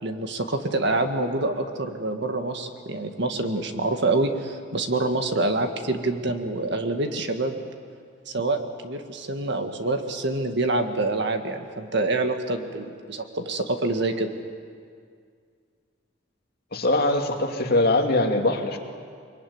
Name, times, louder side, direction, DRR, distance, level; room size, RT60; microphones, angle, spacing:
voice 1, 0.0-7.6 8.3-14.3, right 2 dB, 60° right, 6 dB, 1.9 m, -26 dB
voice 2, 16.7-18.8, left 2 dB, 55° left, 2 dB, 2.5 m, -22 dB
24.0 x 23.0 x 9.6 m, 2.1 s
head